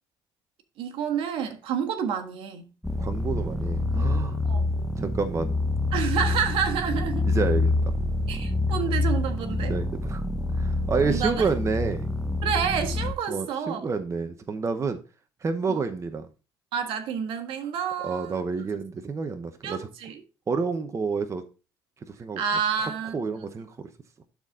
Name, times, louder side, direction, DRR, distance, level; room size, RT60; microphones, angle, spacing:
voice 1, 0.8-2.7 4.4-4.6 5.9-7.3 8.3-9.8 11.0-11.5 12.4-13.8 15.7-15.8 16.7-18.5 19.6-20.2 22.4-23.1, right 7 dB, 70° right, 1.5 m, -29 dB
sound 1, 2.8-13.1, left 2 dB, 5° left, 1.0 m, -27 dB
voice 2, 3.0-4.4 5.0-5.5 7.2-7.9 9.7-10.2 10.5-12.1 13.3-15.0 15.4-16.3 18.0-19.9 20.5-21.4 22.1-22.4 22.8-23.9, right 4 dB, 30° right, 0.9 m, -29 dB
12.0 x 4.2 x 3.8 m
supercardioid pair, 85°, 9 cm